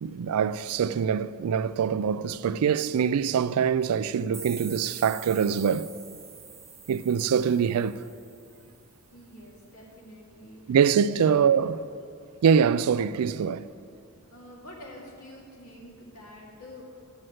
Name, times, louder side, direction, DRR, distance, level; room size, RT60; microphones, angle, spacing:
voice 1, 0.0-5.9 6.9-8.0 10.7-11.8 12.4-13.7, right 7 dB, 80° right, 0.3 m, -24 dB
sound 1, 4.3-9.0, right 5 dB, 10° right, 0.4 m, -45 dB
voice 2, 9.1-10.8 11.2-11.4 14.3-16.8, left 1 dB, 90° left, 2.4 m, -47 dB
9.4 x 7.8 x 7.6 m
head